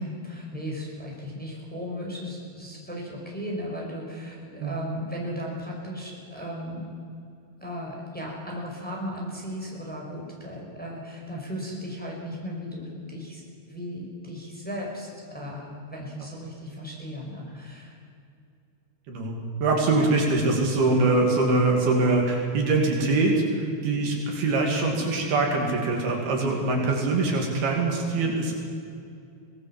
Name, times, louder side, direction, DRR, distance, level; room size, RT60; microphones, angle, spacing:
voice 1, 0.0-6.9 7.6-18.0 20.0-20.1, equal, ahead, -2 dB, 5.1 m, -36 dB
voice 2, 19.1-28.6, right 3 dB, 65° right, 1 dB, 4.5 m, -23 dB
24.5 x 18.5 x 7.4 m, 2.5 s
omnidirectional pair, 4.8 m